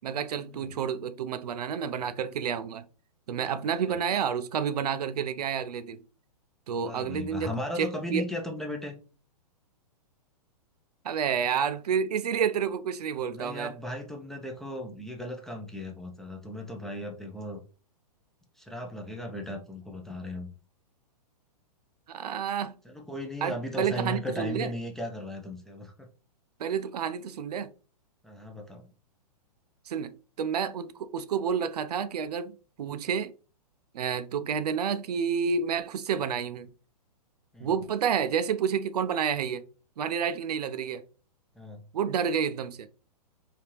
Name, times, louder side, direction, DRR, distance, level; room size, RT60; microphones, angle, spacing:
voice 1, 0.0-2.9 3.3-6.0 6.7-8.2 11.0-13.7 22.1-22.7 23.4-24.7 26.6-27.7 29.9-30.1 30.4-32.5 32.8-33.3 33.9-36.7 37.6-39.6 40.0-41.0 41.9-42.9, right 7 dB, 75° right, 0.4 m, -29 dB
voice 2, 6.8-8.9 13.3-17.6 18.6-20.5 22.8-26.1 28.2-28.9 37.5-37.7 41.6-41.8, left 1 dB, ahead, 0.5 m, -36 dB
3.4 x 2.8 x 2.9 m
hypercardioid pair, 125°, 21 cm